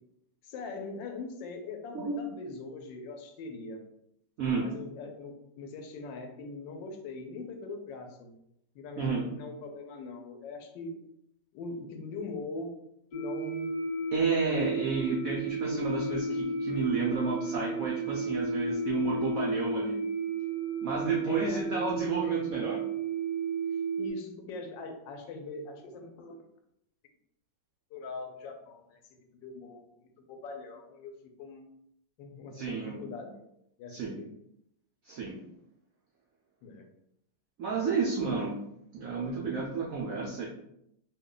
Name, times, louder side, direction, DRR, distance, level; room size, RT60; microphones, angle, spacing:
voice 1, 0.4-3.8 4.5-8.3 8.7-11.0 11.5-12.7 13.1-13.7 21.2-21.8 24.0-26.4 27.9-29.0 29.4-31.7 32.2-33.4 33.8-34.3 36.6-36.9, left 3 dB, 80° left, 4 dB, 1.2 m, -42 dB
sound 1, 13.1-24.1, right 3 dB, 55° left, 1.1 m, -33 dB
voice 2, 14.1-20.0 20.8-22.8 32.5-33.0 33.9-34.2 35.0-35.4 37.6-38.6 38.9-40.5, right 4 dB, 80° right, -3 dB, 0.7 m, -31 dB
3.1 x 2.2 x 3.7 m, 0.79 s
omnidirectional pair, 2.0 m